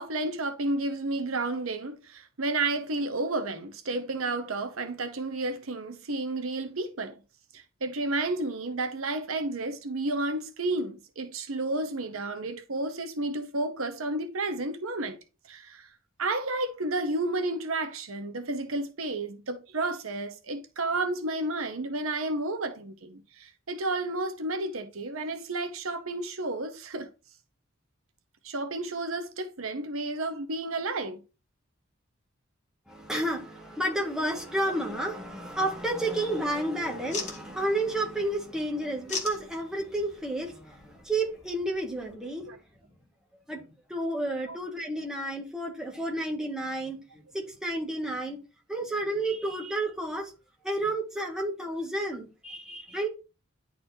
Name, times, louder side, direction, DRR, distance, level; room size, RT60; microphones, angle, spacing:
voice 1, 0.0-7.1 7.5-15.2 15.5-15.9 16.2-27.1 28.4-31.2 42.5-42.6 44.5-44.6, right 2 dB, 80° right, 1.0 m, -31 dB
voice 2, 32.9-42.5 43.5-43.6 43.9-48.4 48.7-50.3 50.6-53.1, right 1 dB, 5° right, 1.7 m, -31 dB
sound 1, 34.8-42.2, left 5 dB, 35° left, 1.7 m, -44 dB
10.5 x 4.2 x 2.8 m
head